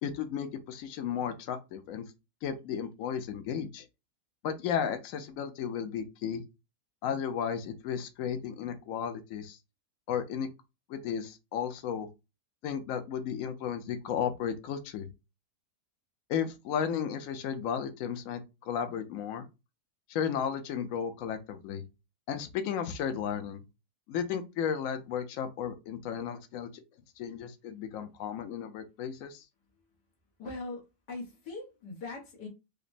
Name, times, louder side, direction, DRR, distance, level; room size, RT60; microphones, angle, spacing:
voice 1, 0.0-2.0 2.4-3.9 4.4-6.4 7.0-9.6 10.1-10.5 10.9-12.1 12.6-15.1 16.3-19.4 20.1-21.8 22.3-23.6 24.1-26.7 27.2-29.4, left 8 dB, 65° left, 1.0 m, -34 dB
voice 2, 30.4-32.5, left 3 dB, 90° left, 1.8 m, -41 dB
5.1 x 2.1 x 2.6 m
omnidirectional pair, 1.7 m